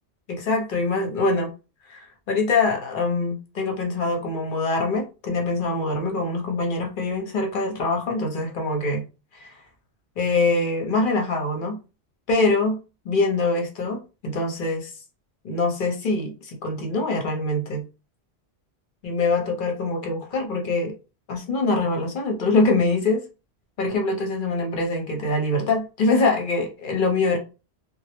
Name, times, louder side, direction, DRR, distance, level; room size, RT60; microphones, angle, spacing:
voice 1, 0.3-1.5 1.9-9.0 9.3-9.5 10.2-11.8 12.3-14.9 15.4-17.8 19.0-20.9 21.3-23.2 23.8-27.4, left 3 dB, 55° left, 2 dB, 0.8 m, -24 dB
2.2 x 2.0 x 3.0 m, 0.31 s
omnidirectional pair, 1.1 m